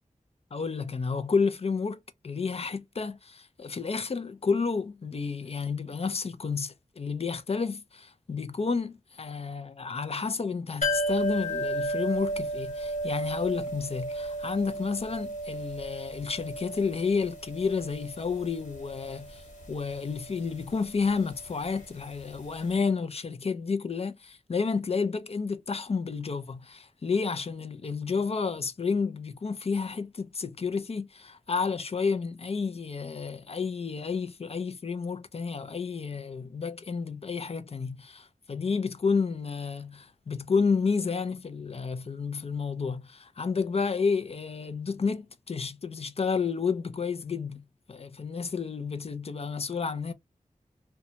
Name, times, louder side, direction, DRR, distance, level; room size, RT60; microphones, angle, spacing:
voice 1, 0.5-2.0 2.2-50.1, left 5 dB, 50° left, 0.4 m, -31 dB
sound 1, 10.8-22.4 22.7-22.8, right 1 dB, 70° left, 1.3 m, -34 dB
2.6 x 2.2 x 2.7 m
cardioid pair, 45°, 14 cm